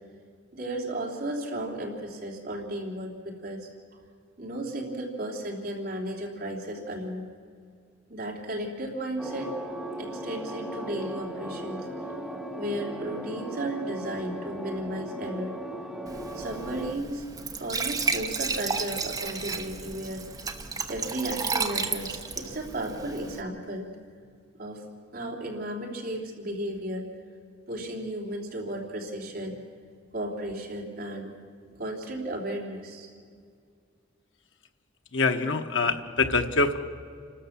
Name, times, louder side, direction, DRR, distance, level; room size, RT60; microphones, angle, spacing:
voice 1, 0.5-3.7 4.4-7.3 8.1-9.5 10.0-12.1 12.6-15.6 16.3-17.2 17.6-20.3 20.9-23.9 24.6-24.8 25.1-27.1 27.7-29.6 30.1-31.3 31.7-33.1, right 1 dB, 55° right, 0 dB, 3.1 m, -34 dB
sound 1, 9.2-16.9, right 1 dB, ahead, 1.3 m, -37 dB
Glass / Trickle dribble / Fill (with liquid), 16.1-23.4, right 4 dB, 20° right, 1.0 m, -33 dB
voice 2, 35.1-36.8, left 3 dB, 80° left, 6 dB, 1.2 m, -25 dB
28.5 x 13.0 x 7.3 m, 2.1 s
head